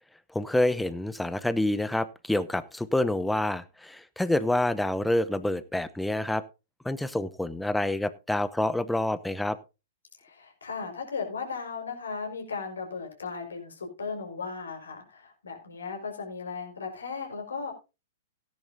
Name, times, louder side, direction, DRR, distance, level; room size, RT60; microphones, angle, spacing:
voice 1, 0.3-6.4 6.8-9.6, left 1 dB, 5° left, 15 dB, 0.8 m, -27 dB
voice 2, 10.2-17.7, left 5 dB, 75° left, 3 dB, 5.1 m, -36 dB
17.0 x 10.5 x 2.7 m, 0.28 s
figure-of-eight pair, 110°, 0 cm